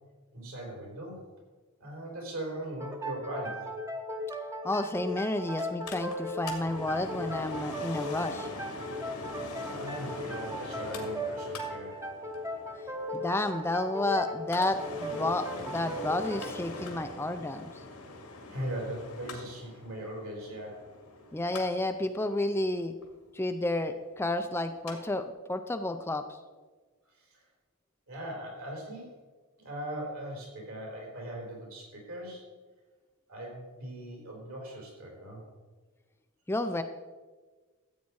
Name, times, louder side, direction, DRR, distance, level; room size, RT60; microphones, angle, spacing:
voice 1, 0.3-1.2 1.8-3.7 9.0-9.3 9.6-12.0 12.7-12.8 18.5-20.9 27.1-27.4 28.1-29.2 29.6-32.5 33.3-35.4, right 1 dB, 70° right, -1 dB, 4.2 m, -39 dB
sound 1, 2.8-18.1, equal, 15° right, 0.9 m, -38 dB
voice 2, 4.6-8.5 13.1-17.7 21.3-22.9 23.3-26.3 36.5-36.8, left 2 dB, 10° left, 8 dB, 0.4 m, -31 dB
Mechanical fan, 5.6-24.9 25.3-25.4, left 2 dB, 85° left, 2.1 m, -44 dB
13.5 x 8.4 x 4.7 m, 1.3 s
head